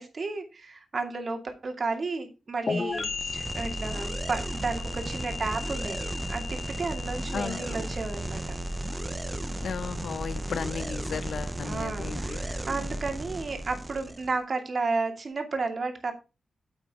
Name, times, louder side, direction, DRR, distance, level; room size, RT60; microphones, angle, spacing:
voice 1, 0.0-6.0 6.3-8.6 11.6-16.1, right 3 dB, 45° right, 2.4 m, -32 dB
sound 1, 2.7-10.2, left 4 dB, 50° left, 1.2 m, -37 dB
sound 2, 2.9-14.4, right 1 dB, 15° right, 0.7 m, -35 dB
voice 2, 7.3-7.8 9.6-12.6, left 6 dB, 75° left, 0.8 m, -35 dB
9.0 x 8.0 x 3.6 m
cardioid pair, 95°, 0 cm